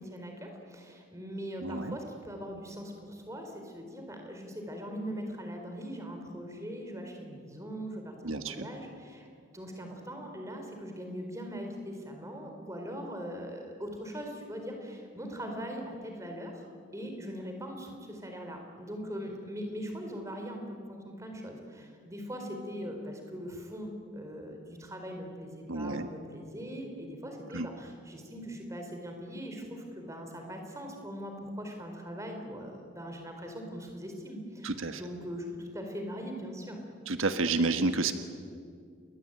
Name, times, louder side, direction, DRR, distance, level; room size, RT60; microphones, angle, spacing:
voice 1, 0.0-9.3 9.5-16.6 16.9-36.8, equal, 15° right, 3 dB, 4.4 m, -41 dB
voice 2, 1.6-2.0 8.2-8.7 25.7-26.1 27.5-27.7 34.6-35.0 37.1-38.1, right 3 dB, 80° right, 8 dB, 1.5 m, -30 dB
29.0 x 22.0 x 9.2 m, 2.2 s
head